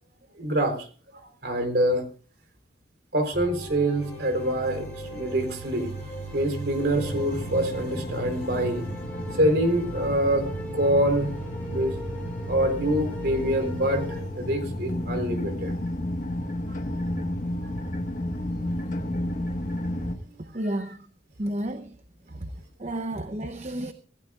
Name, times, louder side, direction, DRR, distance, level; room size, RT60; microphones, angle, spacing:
voice 1, 0.4-0.9 1.1-2.1 3.1-8.9 9.3-10.5 10.7-11.3 11.7-11.9 12.5-15.7 20.9-21.0, right 1 dB, 55° right, 6 dB, 3.9 m, -25 dB
sound 1, 3.3-14.2, right 1 dB, 10° left, 6.0 m, -37 dB
sound 2, 6.9-20.2, left 1 dB, 40° left, 1.5 m, -32 dB
voice 2, 20.5-21.0 21.4-21.9 22.4-22.5 22.8-23.9, right 1 dB, 35° right, 9 dB, 0.8 m, -31 dB
25.5 x 15.5 x 2.4 m, 0.39 s
head